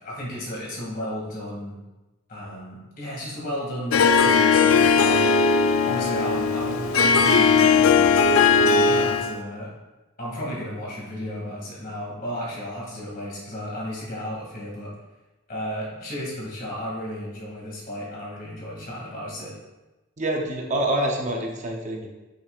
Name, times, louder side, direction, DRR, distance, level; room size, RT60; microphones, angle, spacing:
voice 1, 0.0-1.8 2.3-5.3 5.8-9.7 10.2-14.9 15.5-19.6, equal, 45° left, -4 dB, 2.3 m, -33 dB
Harp, 3.9-9.4, left 5 dB, 85° left, 0.5 m, -18 dB
voice 2, 20.2-22.1, right 1 dB, 35° right, 1 dB, 0.7 m, -26 dB
8.1 x 6.0 x 2.4 m, 1.1 s
head